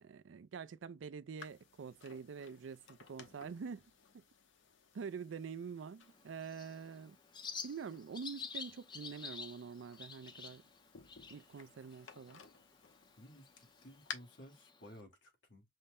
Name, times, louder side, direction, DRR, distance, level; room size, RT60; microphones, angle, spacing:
voice 1, 0.0-4.2 4.9-7.2 7.6-10.6 11.3-12.4, right 6 dB, 90° right, 0.4 m, -46 dB
sound 1, 1.4-14.1, left 6 dB, 90° left, 0.8 m, -56 dB
Bird, 6.0-15.0, left 5 dB, 25° left, 0.6 m, -51 dB
voice 2, 13.2-15.8, equal, 70° left, 1.4 m, -56 dB
5.4 x 2.1 x 3.4 m
head